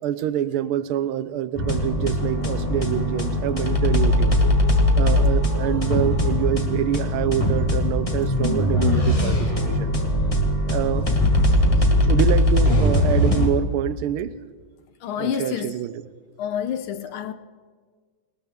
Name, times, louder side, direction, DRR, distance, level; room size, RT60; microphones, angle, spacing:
voice 1, 0.0-4.4 5.0-9.9 10.7-11.1 12.0-14.4 15.2-16.1, right 11 dB, 85° right, 1.5 m, -26 dB
sound 1, 1.6-13.5, left 1 dB, 20° left, 1.2 m, -20 dB
voice 2, 15.0-15.8 16.4-17.3, left 9 dB, 75° left, 1.6 m, -28 dB
19.5 x 19.0 x 3.6 m
omnidirectional pair, 2.4 m